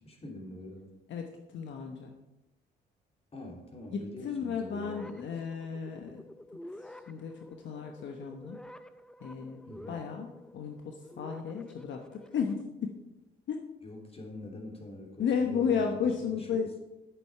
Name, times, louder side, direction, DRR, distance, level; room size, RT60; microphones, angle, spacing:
voice 1, 0.0-0.9 3.3-5.2 9.6-10.0 13.8-16.6, left 1 dB, 30° left, 0 dB, 3.1 m, -45 dB
voice 2, 1.1-2.2 3.9-6.2 6.7-8.6 9.2-9.6 9.9-12.9 13.5-13.6 15.2-16.7, left 6 dB, 70° left, 3 dB, 1.1 m, -33 dB
sound 1, 4.6-12.6, left 1 dB, 5° left, 0.6 m, -50 dB
10.5 x 8.6 x 4.5 m, 0.99 s
cardioid pair, 90°, 20 cm